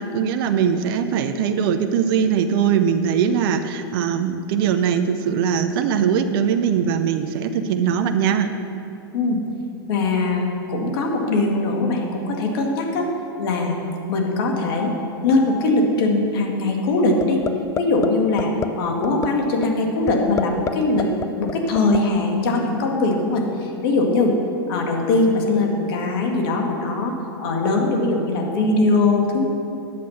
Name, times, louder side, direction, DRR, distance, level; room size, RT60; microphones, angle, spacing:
voice 1, 0.0-8.5, right 7 dB, 60° right, 8 dB, 0.7 m, -21 dB
voice 2, 9.9-13.1 13.4-13.8 14.1-14.9 15.2-17.4 17.8-18.5 18.8-21.1 21.4-24.3 24.7-27.1 27.4-29.5, left 2 dB, 65° left, 1 dB, 2.1 m, -21 dB
sound 1, 17.2-17.5 17.8-18.1 18.4-18.7 19.0-19.3 19.6-19.7 20.1-20.7 21.0-22.0, left 8 dB, 20° left, 0.5 m, -24 dB
10.5 x 7.7 x 5.7 m, 2.6 s
hypercardioid pair, 115°, 13 cm